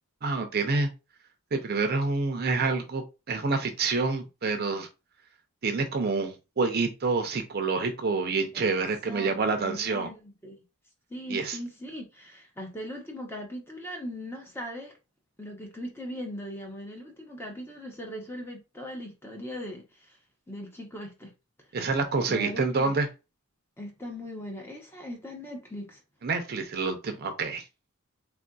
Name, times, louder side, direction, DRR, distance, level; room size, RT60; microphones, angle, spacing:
voice 1, 0.2-0.9 1.5-4.9 5.6-10.1 11.3-11.6 21.7-23.1 26.2-27.6, right 4 dB, 45° right, 0.6 m, -27 dB
voice 2, 8.5-10.6 11.1-14.9 15.4-20.2 20.5-21.3 22.3-22.9 23.8-26.0, equal, 10° left, 0.7 m, -39 dB
3.6 x 2.5 x 2.3 m
head